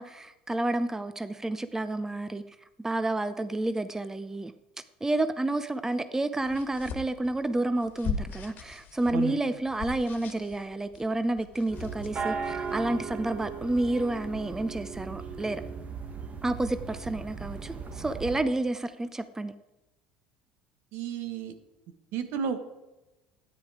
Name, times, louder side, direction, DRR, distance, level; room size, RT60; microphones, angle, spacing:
voice 1, 0.0-2.4 2.8-4.5 5.0-15.6 16.4-19.5, right 2 dB, 10° right, 12 dB, 0.6 m, -30 dB
sound 1, 6.4-12.7, left 5 dB, 45° left, 1.7 m, -40 dB
sound 2, 11.7-18.4, right 5 dB, 35° right, 1.6 m, -37 dB
voice 2, 20.9-21.5 22.1-22.6, right 7 dB, 65° right, 9 dB, 1.4 m, -32 dB
13.0 x 9.8 x 4.8 m, 1.0 s
hypercardioid pair, 75°, 4 cm